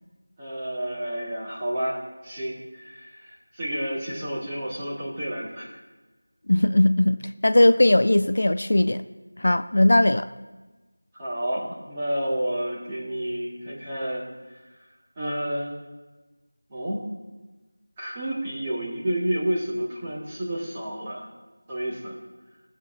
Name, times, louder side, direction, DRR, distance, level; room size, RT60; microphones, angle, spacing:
voice 1, 0.4-5.7 11.2-14.3 15.2-15.7 16.7-17.0 18.0-21.3 21.7-22.1, right 1 dB, 15° right, -7 dB, 2.1 m, -30 dB
voice 2, 6.5-9.0 9.4-10.3, left 1 dB, 55° left, 11 dB, 0.4 m, -19 dB
18.5 x 7.5 x 3.9 m, 1.2 s
figure-of-eight pair, 175°, 0 cm